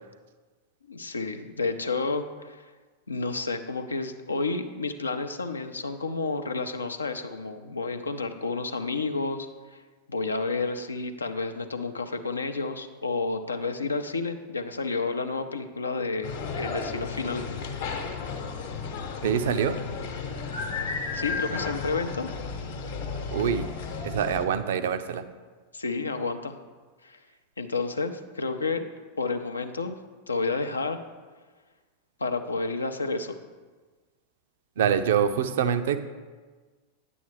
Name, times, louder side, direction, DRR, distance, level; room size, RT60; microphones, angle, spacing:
voice 1, 0.9-2.6 3.1-9.8 10.1-17.4 21.1-22.3 25.7-26.6 27.0-27.2 27.6-28.9 29.2-30.0 30.3-31.0 32.2-33.4, left 3 dB, 75° left, 8 dB, 0.5 m, -30 dB
sound 1, 16.2-24.5, left 5 dB, 60° left, 1.0 m, -33 dB
voice 2, 19.2-19.8 23.3-23.7 24.0-25.2 34.8-36.0, right 8 dB, 60° right, 11 dB, 0.5 m, -25 dB
9.6 x 7.9 x 3.2 m, 1.4 s
figure-of-eight pair, 90°, 0 cm